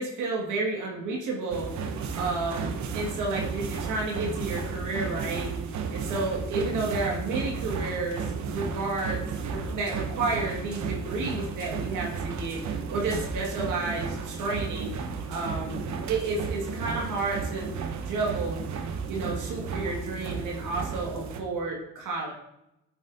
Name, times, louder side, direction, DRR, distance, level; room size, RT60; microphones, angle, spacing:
voice 1, 0.0-1.7 2.1-5.5 5.9-12.6 12.9-14.9 15.3-15.8 16.1-18.6 19.1-22.3, right 3 dB, 85° right, -2 dB, 1.8 m, -31 dB
sound 1, 1.5-21.4, right 5 dB, 70° right, 1.0 m, -33 dB
9.1 x 7.2 x 2.7 m, 0.83 s
cardioid pair, 90°, 30 cm